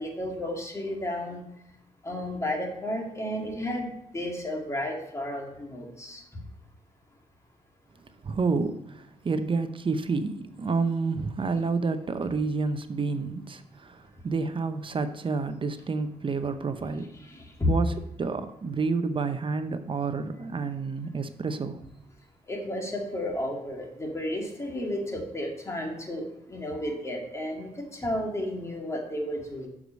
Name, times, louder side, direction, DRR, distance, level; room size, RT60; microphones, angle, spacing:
voice 1, 0.0-1.4 2.0-6.4 17.1-17.7 22.5-29.7, left 1 dB, 20° left, 2.1 m, -32 dB
voice 2, 8.2-17.1 17.7-21.8, right 4 dB, 40° right, 0.7 m, -29 dB
6.6 x 4.8 x 5.1 m
cardioid pair, 70°, 14 cm